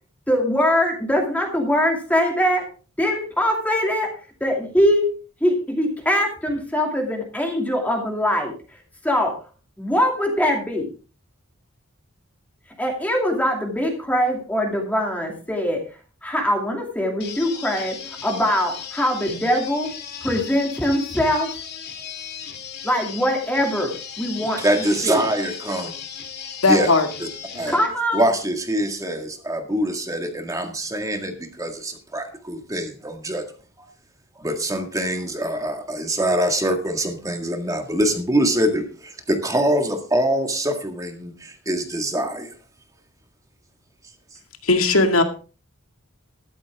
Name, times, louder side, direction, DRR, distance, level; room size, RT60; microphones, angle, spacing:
voice 1, 0.3-2.6 3.0-4.1 4.4-5.1 5.4-8.5 9.0-9.3 9.8-10.9 12.8-15.8 16.2-19.9 20.2-21.5 22.8-24.6 25.0-25.2 27.7-28.3, equal, 5° left, 1 dB, 2.5 m, -22 dB
sound 1, 17.2-27.9, left 7 dB, 55° left, 2.1 m, -36 dB
voice 2, 24.4-25.9 26.7-26.9 27.2-27.3 27.5-27.8 28.1-33.4 34.4-42.5, right 1 dB, 15° right, 5 dB, 1.8 m, -24 dB
voice 3, 26.6-27.1 44.6-45.2, left 3 dB, 90° left, 6 dB, 2.1 m, -17 dB
13.5 x 12.0 x 3.6 m, 0.36 s
head